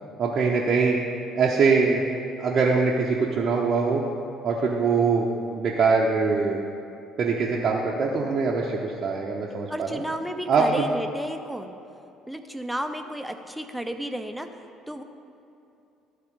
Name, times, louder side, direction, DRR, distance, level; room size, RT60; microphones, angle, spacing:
voice 1, 0.2-1.0 1.3-2.0 2.4-4.0 4.4-5.3 5.6-6.6 7.2-10.0 10.5-10.9, right 4 dB, 45° right, -3 dB, 0.7 m, -23 dB
voice 2, 9.7-11.8 12.3-15.0, right 1 dB, ahead, 6 dB, 0.6 m, -33 dB
12.0 x 4.4 x 5.0 m, 2.7 s
figure-of-eight pair, 50°, 0 cm